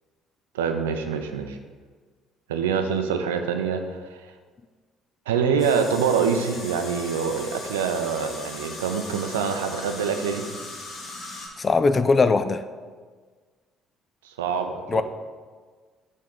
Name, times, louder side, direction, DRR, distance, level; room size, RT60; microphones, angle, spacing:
voice 1, 0.5-1.6 2.5-3.8 4.1-4.2 5.3-10.5 14.2-15.0, right 6 dB, 75° right, 6 dB, 0.5 m, -25 dB
sound 1, 5.6-11.5, left 2 dB, 50° left, 1.3 m, -38 dB
voice 2, 11.6-12.6 14.9-15.0, left 4 dB, 30° left, 12 dB, 0.4 m, -20 dB
6.7 x 3.6 x 5.3 m, 1.5 s
figure-of-eight pair, 50°, 0 cm